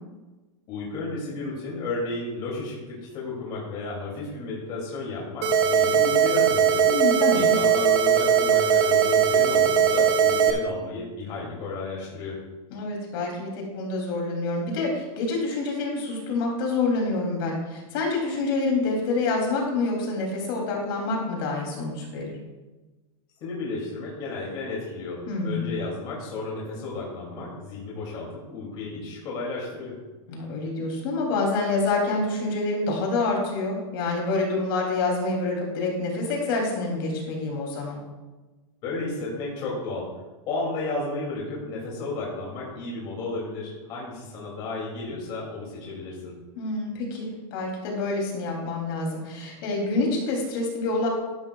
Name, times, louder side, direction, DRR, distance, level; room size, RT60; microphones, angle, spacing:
voice 1, 0.7-6.9 7.3-12.4 23.4-30.0 38.8-40.1 40.5-46.4, left 3 dB, 25° left, -4 dB, 2.6 m, -33 dB
sound 1, 5.4-10.5, right 7 dB, 50° right, 1.7 m, -20 dB
voice 2, 6.9-7.6 12.7-22.3 25.3-25.7 30.3-38.0 46.6-51.1, left 3 dB, 40° left, 0 dB, 2.9 m, -27 dB
13.5 x 11.5 x 2.3 m, 1.2 s
supercardioid pair, 175°, 17 cm